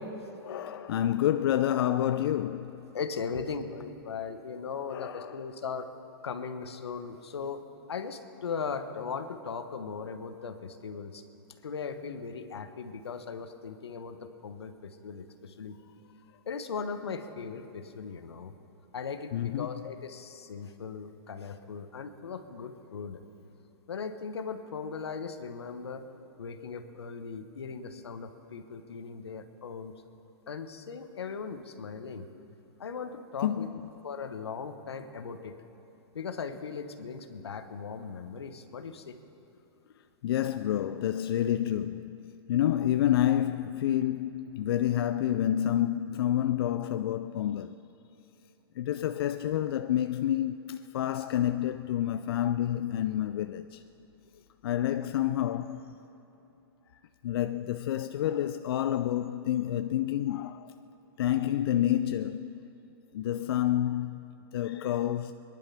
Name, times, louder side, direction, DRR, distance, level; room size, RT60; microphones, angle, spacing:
voice 1, 0.4-2.8 4.9-5.3 19.3-19.7 33.4-33.7 40.2-42.2 42.5-47.7 48.8-53.8 54.6-55.9 57.2-60.7 61.2-62.5 63.1-65.3, left 11 dB, 65° left, 0.4 m, -28 dB
voice 2, 2.9-5.9 6.2-11.2 11.6-15.8 16.5-18.5 18.9-23.2 23.9-26.0 26.4-29.9 30.5-32.3 32.8-33.7 34.0-35.5 36.1-39.2, left 5 dB, 90° left, 1.2 m, -38 dB
22.0 x 10.5 x 5.8 m
hypercardioid pair, 130°, 13 cm